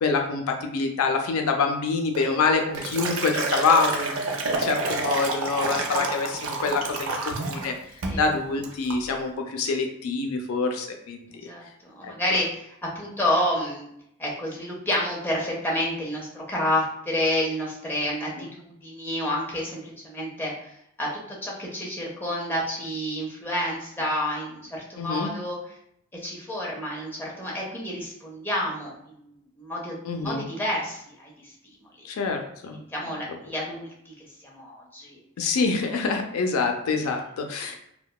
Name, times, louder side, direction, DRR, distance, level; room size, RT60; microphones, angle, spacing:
voice 1, 0.0-7.7 8.2-11.5 12.0-12.1 18.4-18.5 25.0-25.3 30.0-30.4 32.0-32.8 35.4-37.8, left 4 dB, 85° left, 4 dB, 0.4 m, -26 dB
Liquid, 2.1-7.7 8.0-8.3 8.6-9.0, right 3 dB, 80° right, 0.4 m, -29 dB
voice 2, 11.3-13.9 14.2-20.7 21.0-21.1 21.4-25.7 26.1-28.9 29.2-31.5 32.0-32.1 32.7-35.2, left 1 dB, 10° left, -4 dB, 0.5 m, -29 dB
2.7 x 2.1 x 2.2 m, 0.74 s
head